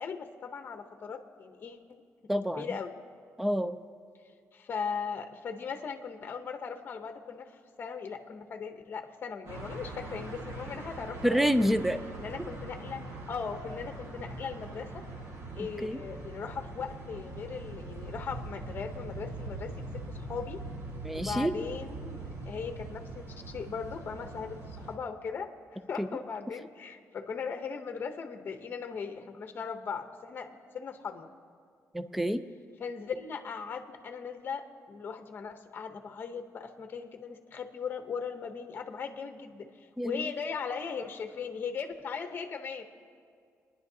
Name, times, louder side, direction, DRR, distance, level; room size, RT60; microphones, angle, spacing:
voice 1, 0.0-1.8 2.5-2.9 4.5-11.7 12.2-15.0 15.6-20.7 21.1-25.5 25.9-31.3 32.8-42.8, left 6 dB, 40° left, 6 dB, 0.8 m, -38 dB
voice 2, 2.3-2.7 3.4-3.8 11.2-12.0 12.4-12.5 15.8-16.0 21.0-21.5 26.0-26.1 31.9-32.4 40.0-40.3, equal, 5° right, 11 dB, 0.4 m, -28 dB
sound 1, 9.5-25.0, right 2 dB, 70° right, 1.5 m, -42 dB
29.5 x 10.5 x 2.7 m, 2.2 s
cardioid pair, 145°, 5 cm